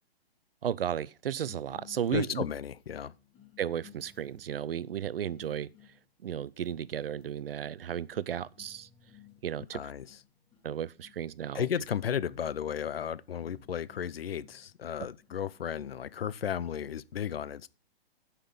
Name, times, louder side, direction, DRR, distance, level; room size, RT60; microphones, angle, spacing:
voice 1, 0.6-2.4 3.6-5.7 6.2-8.9 9.4-9.8 10.6-11.7, right 9 dB, 65° right, 0.6 m, -34 dB
sound 1, 1.4-16.9, left 9 dB, 15° left, 1.6 m, -60 dB
voice 2, 2.1-3.1 9.7-10.2 11.5-17.7, left 9 dB, 70° left, 0.7 m, -34 dB
10.0 x 5.8 x 6.9 m
hypercardioid pair, 135°, 31 cm